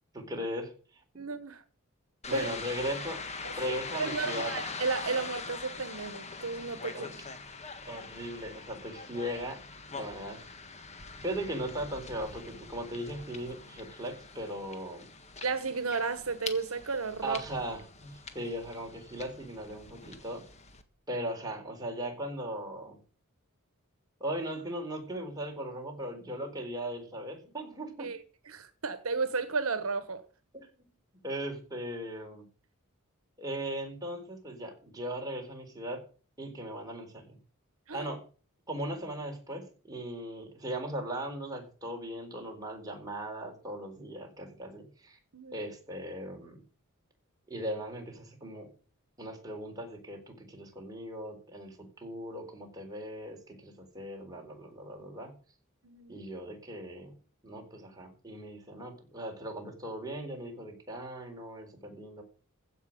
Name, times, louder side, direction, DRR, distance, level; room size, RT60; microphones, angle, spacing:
voice 1, 0.1-0.7 2.3-3.2 3.6-4.5 6.9-7.3 7.9-9.6 9.9-10.4 11.2-15.1 17.2-20.4 21.1-23.0 24.2-28.1 30.5-30.7 31.2-32.5 33.4-36.0 36.4-37.4 37.9-38.3 38.7-45.2 45.5-46.6 47.5-48.7 49.2-55.3 56.1-57.1 57.4-62.2, right 1 dB, 20° right, 4.1 m, -38 dB
voice 2, 1.1-1.6 2.3-2.5 3.4-3.5 3.9-7.1 15.4-17.4 28.0-28.2 28.5-30.2 37.9-38.1 45.3-45.7 55.8-56.2, right 4 dB, 75° right, 1.2 m, -33 dB
sound 1, 2.2-20.8, left 4 dB, 30° left, 1.6 m, -43 dB
15.5 x 5.9 x 8.7 m
head